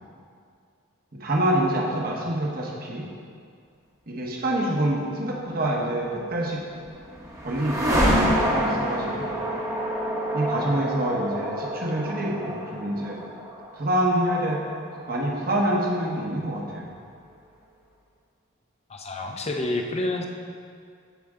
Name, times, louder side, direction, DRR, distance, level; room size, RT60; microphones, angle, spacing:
voice 1, 1.1-3.1 4.1-6.6 7.4-9.4 10.3-13.2 13.7-14.6 15.1-16.9, right 1 dB, 45° right, -2 dB, 1.2 m, -26 dB
sound 1, 6.4-16.4, equal, 15° right, 1.1 m, -28 dB
voice 2, 18.9-20.3, left 2 dB, 30° left, 2 dB, 0.7 m, -28 dB
14.5 x 5.1 x 3.7 m, 2.3 s
head